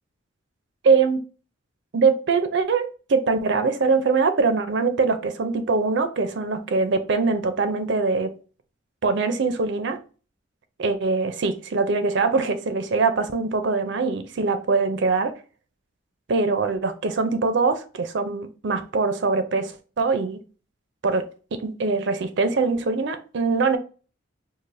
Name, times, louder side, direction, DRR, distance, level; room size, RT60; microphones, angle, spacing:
voice 1, 0.8-1.2 1.9-8.3 9.0-10.0 10.8-15.4 16.3-20.4 21.0-23.8, right 4 dB, 60° right, 0.5 m, -23 dB
4.7 x 2.5 x 2.5 m
head